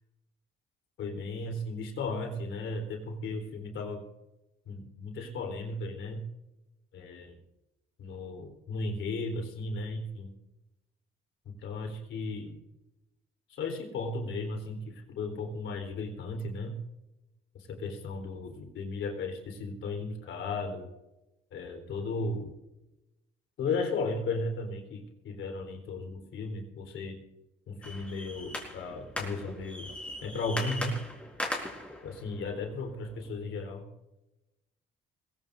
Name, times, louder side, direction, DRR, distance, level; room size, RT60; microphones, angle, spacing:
voice 1, 1.0-4.1 4.7-6.2 6.9-7.4 8.0-10.3 11.5-12.6 13.5-16.8 17.7-20.9 21.5-22.5 23.6-27.2 27.7-29.9 30.2-31.0 32.0-33.8, left 3 dB, 75° left, 3 dB, 3.7 m, -35 dB
sound 1, 27.8-33.3, left 1 dB, 5° left, 4.5 m, -39 dB
21.5 x 17.5 x 2.6 m, 0.94 s
cardioid pair, 90°, 20 cm